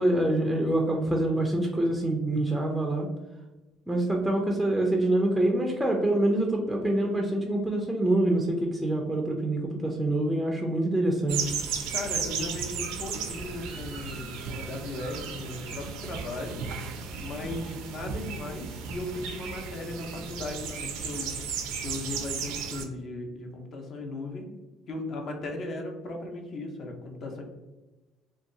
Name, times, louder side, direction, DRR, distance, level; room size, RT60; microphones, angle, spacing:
voice 1, 0.0-3.1 3.9-11.4, right 1 dB, 5° right, 1 dB, 0.4 m, -25 dB
sound 1, 11.3-22.8, right 6 dB, 80° right, 0.4 m, -35 dB
voice 2, 11.9-16.6 17.2-21.3 21.8-24.5 24.9-27.4, left 2 dB, 50° left, 2 dB, 0.6 m, -37 dB
2.6 x 2.2 x 2.5 m, 1.1 s
cardioid pair, 110°, 0 cm